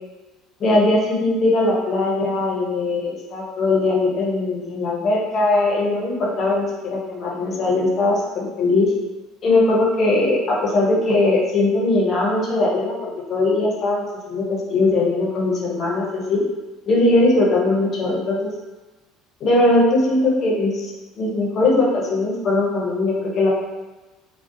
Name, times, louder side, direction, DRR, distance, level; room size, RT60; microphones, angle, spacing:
voice 1, 0.6-8.9 9.4-16.4 16.9-18.5 19.4-20.9 21.2-23.5, left 2 dB, 40° left, -3 dB, 0.6 m, -20 dB
2.5 x 2.0 x 2.5 m, 1.2 s
cardioid pair, 120°, 0 cm